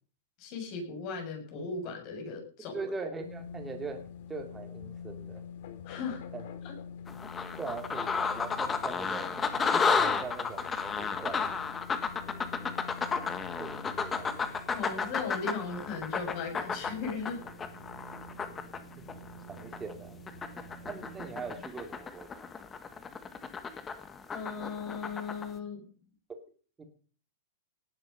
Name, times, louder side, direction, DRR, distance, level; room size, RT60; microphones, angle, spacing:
voice 1, 0.4-2.8 5.9-6.2 6.6-6.7 14.7-17.4 24.3-25.9, left 5 dB, 35° left, 3 dB, 6.5 m, -37 dB
voice 2, 2.6-4.0 4.3-5.4 6.3-6.4 7.6-9.3 9.7-10.7 11.0-11.5 12.1-12.8 13.6-14.3 19.0-19.1 19.5-20.2 20.8-22.5 26.3-26.4 26.8-26.9, right 4 dB, 10° right, 4 dB, 3.0 m, -41 dB
sound 1, 3.2-21.6, left 3 dB, 55° left, 3.1 m, -47 dB
sound 2, 7.1-19.9 20.3-25.4, left 5 dB, 15° left, 1.4 m, -32 dB
18.5 x 11.0 x 5.5 m, 0.41 s
supercardioid pair, 160°, 0 cm